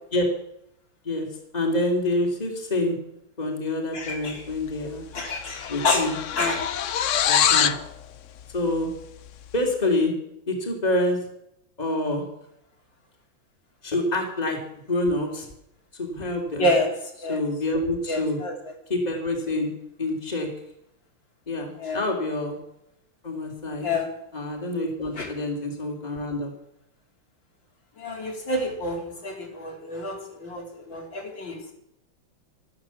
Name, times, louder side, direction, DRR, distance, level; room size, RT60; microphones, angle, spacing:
voice 1, 1.5-3.0 3.4-5.0 5.7-6.2 7.2-7.8 8.5-8.9 9.5-10.1 10.5-11.2 11.8-12.3 13.8-15.5 15.9-16.7 17.3-18.4 18.9-19.7 20.0-20.5 21.5-22.6 23.2-23.9 24.3-26.5, left 1 dB, 20° left, 1 dB, 3.3 m, -27 dB
voice 2, 3.9-4.4 5.1-6.0 6.4-6.7 16.6-16.9 17.2-17.4 18.1-18.6 21.8-22.0 23.8-24.1 25.2-25.3 28.0-31.7, left 2 dB, 65° left, 0 dB, 4.0 m, -28 dB
sound 1, 4.7-4.9 5.1-7.9, left 10 dB, 85° left, 0.6 m, -24 dB
14.0 x 12.5 x 7.3 m, 0.78 s
omnidirectional pair, 2.2 m